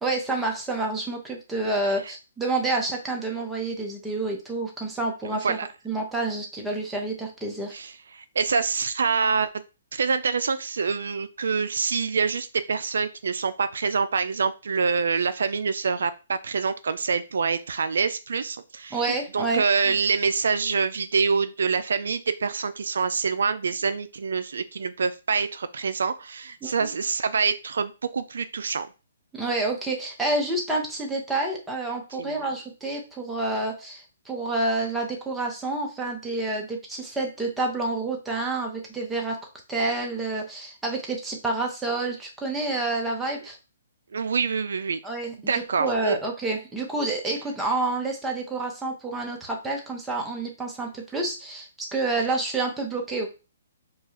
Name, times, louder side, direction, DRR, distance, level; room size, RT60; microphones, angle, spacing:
voice 1, 0.0-5.6 5.8-7.7 18.9-20.0 26.6-26.7 29.3-39.4 39.7-43.6 45.0-53.3, right 2 dB, 5° right, 0 dB, 0.9 m, -28 dB
voice 2, 5.3-5.7 7.7-9.5 9.9-28.9 32.2-32.5 44.1-45.0 45.5-46.2, right 5 dB, 75° right, 12 dB, 0.3 m, -26 dB
4.6 x 2.3 x 2.8 m, 0.31 s
hypercardioid pair, 150°, 0 cm